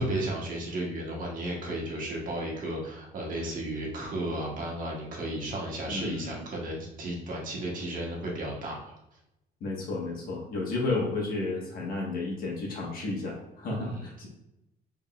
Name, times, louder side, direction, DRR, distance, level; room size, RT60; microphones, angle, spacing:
voice 1, 0.0-9.0 13.8-14.1, right 1 dB, 55° right, -2 dB, 1.2 m, -34 dB
voice 2, 5.9-6.4 9.6-14.3, left 3 dB, 60° left, -1 dB, 1.3 m, -32 dB
3.7 x 3.6 x 2.4 m, 0.87 s
cardioid pair, 110°, 17 cm